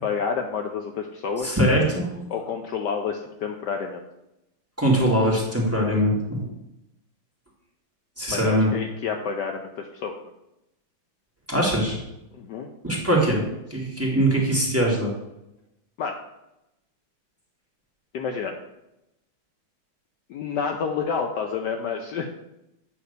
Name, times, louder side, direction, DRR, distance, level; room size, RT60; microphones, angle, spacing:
voice 1, 0.0-1.6 2.3-4.1 8.3-10.2 12.3-12.7 16.0-16.1 18.1-18.6 20.3-22.3, left 6 dB, 70° left, 4 dB, 1.1 m, -29 dB
voice 2, 1.4-2.2 4.8-6.5 8.2-8.7 11.5-12.0 12.8-13.4 13.7-15.1, right 1 dB, 10° right, -4 dB, 1.6 m, -22 dB
8.7 x 3.3 x 6.5 m, 0.88 s
omnidirectional pair, 2.2 m